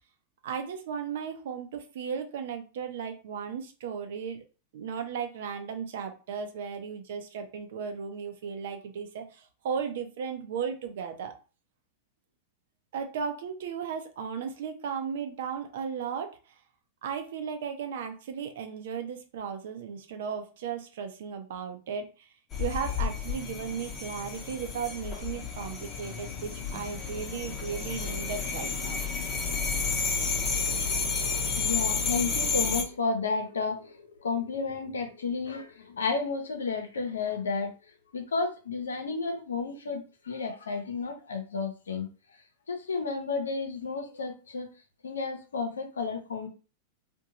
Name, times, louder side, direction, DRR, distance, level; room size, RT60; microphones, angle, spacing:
voice 1, 0.4-4.4 4.7-11.3 12.9-16.4 17.0-22.3 22.6-29.0 30.2-30.4, right 6 dB, 70° right, 6 dB, 0.6 m, -35 dB
sound 1, 22.5-32.8, left 5 dB, 30° left, 0.8 m, -31 dB
voice 2, 30.8-37.7 38.1-42.1 42.7-44.7 45.0-46.5, left 4 dB, 90° left, 5 dB, 0.6 m, -32 dB
2.6 x 2.2 x 2.8 m, 0.33 s
hypercardioid pair, 110°, 0 cm